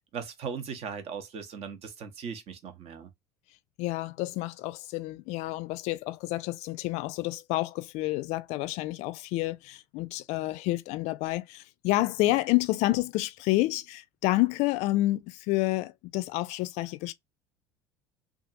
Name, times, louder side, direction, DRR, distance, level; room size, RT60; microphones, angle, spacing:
voice 1, 0.1-3.1, right 6 dB, 50° right, 0.8 m, -38 dB
voice 2, 3.8-17.1, left 18 dB, 55° left, 0.4 m, -29 dB
2.7 x 2.4 x 2.5 m
hypercardioid pair, 70°, 14 cm